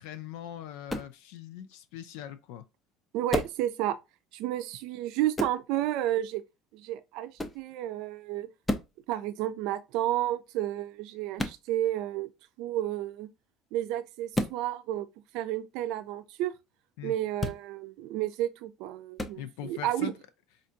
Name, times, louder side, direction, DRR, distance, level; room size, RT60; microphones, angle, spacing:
voice 1, 0.0-2.7 17.0-17.1 19.4-20.2, left 10 dB, 85° left, 0.4 m, -41 dB
sound 1, 0.9-1.2 3.3-3.6 5.4-5.6 7.4-7.6 8.6-9.0 11.4-11.6 14.3-14.6 17.4-17.6 19.2-19.4, left 1 dB, 15° left, 0.5 m, -31 dB
voice 2, 3.1-4.0 4.3-6.4 6.7-8.5 9.1-12.3 12.6-13.3 13.7-15.1 15.3-16.5 17.0-20.1, right 13 dB, 75° right, 0.5 m, -31 dB
5.1 x 2.5 x 2.7 m
cardioid pair, 120°, 0 cm